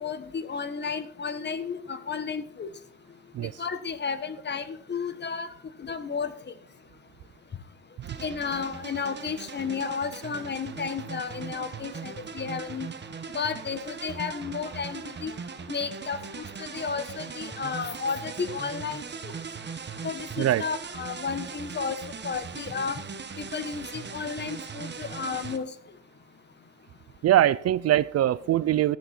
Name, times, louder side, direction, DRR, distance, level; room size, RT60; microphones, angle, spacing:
voice 1, 0.0-2.7 3.6-5.5 5.8-6.3 8.2-12.9 13.3-15.3 15.7-19.3 20.0-22.0 22.2-23.0 23.4-25.7, left 5 dB, 35° left, 12 dB, 1.2 m, -32 dB
sound 1, 8.0-25.6, right 5 dB, 35° right, 1.3 m, -39 dB
voice 2, 27.2-29.0, right 12 dB, 55° right, 19 dB, 0.5 m, -22 dB
13.0 x 9.0 x 4.4 m, 0.64 s
cardioid pair, 90°, 30 cm